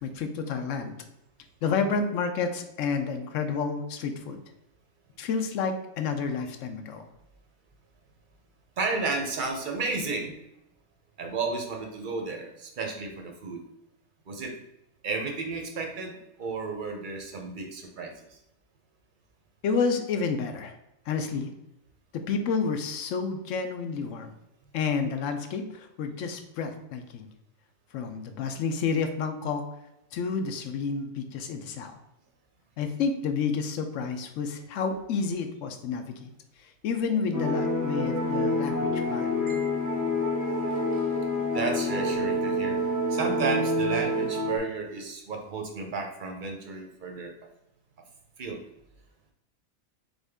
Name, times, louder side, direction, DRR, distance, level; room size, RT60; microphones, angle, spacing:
voice 1, 0.0-0.9 1.6-4.4 5.2-7.0 19.6-20.7 21.1-21.5 22.1-24.3 24.7-27.3 27.9-29.6 30.1-32.0 32.8-36.3 36.8-39.3, left 5 dB, 70° left, 7 dB, 0.9 m, -30 dB
voice 2, 8.8-10.4 11.2-13.6 14.3-14.6 15.0-18.4 39.5-40.0 40.9-42.8 43.1-47.4 48.4-48.6, right 4 dB, 50° right, 2 dB, 0.6 m, -33 dB
sound 1, 37.3-44.6, left 1 dB, 15° left, 0.8 m, -27 dB
4.0 x 3.5 x 3.4 m, 0.87 s
omnidirectional pair, 1.5 m